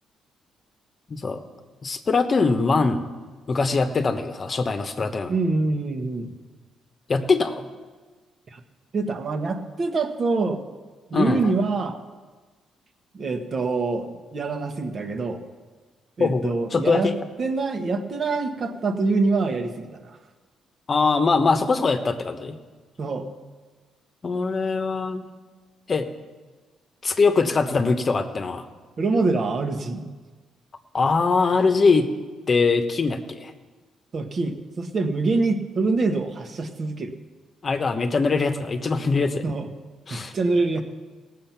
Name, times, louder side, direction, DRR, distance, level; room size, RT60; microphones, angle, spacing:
voice 1, 1.1-1.4 1.8-3.0 3.5-5.3 7.1-7.6 11.1-11.5 16.2-17.1 20.9-22.6 24.2-25.2 25.9-26.1 27.0-28.6 30.9-32.1 32.5-33.5 37.6-39.4 40.1-40.3, left 4 dB, 40° left, 7 dB, 1.0 m, -22 dB
voice 2, 5.3-6.3 8.5-8.6 8.9-10.6 11.1-12.0 13.1-15.4 16.2-17.1 17.4-20.2 23.0-23.3 29.0-30.1 34.1-37.1 39.4-39.7 40.1-40.8, right 3 dB, 45° right, 6 dB, 1.3 m, -25 dB
17.5 x 7.7 x 5.8 m, 1.4 s
cardioid pair, 90°, 0 cm